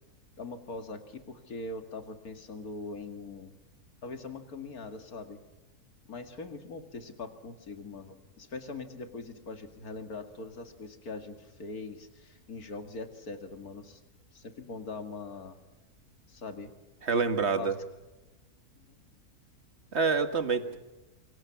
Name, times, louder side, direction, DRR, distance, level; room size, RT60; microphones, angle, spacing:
voice 1, 0.4-3.5 4.0-5.4 6.1-14.0 14.3-15.6 16.3-16.7 17.6-17.7 18.9-19.0, left 3 dB, 70° left, 7 dB, 2.7 m, -42 dB
voice 2, 17.0-17.8 19.9-20.8, right 5 dB, 45° right, 9 dB, 1.9 m, -27 dB
27.5 x 24.0 x 6.0 m, 1.1 s
omnidirectional pair, 1.6 m